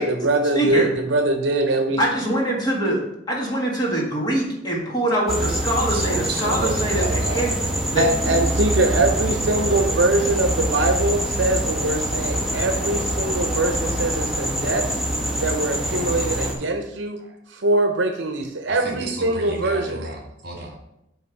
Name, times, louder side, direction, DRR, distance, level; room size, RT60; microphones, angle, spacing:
voice 1, 0.0-2.0 8.0-15.0 15.4-17.2 17.5-20.0, right 2 dB, 70° right, 4 dB, 0.8 m, -22 dB
voice 2, 0.6-0.9 2.0-3.0 3.3-7.0 7.3-7.5 7.9-8.0, right 1 dB, 20° left, -3 dB, 1.7 m, -23 dB
sound 1, 5.3-16.5, right 1 dB, ahead, 1.1 m, -25 dB
voice 3, 5.9-7.4 15.9-16.1 18.7-20.8, right 1 dB, 50° right, 0 dB, 1.9 m, -31 dB
10.0 x 3.5 x 4.5 m, 0.82 s
head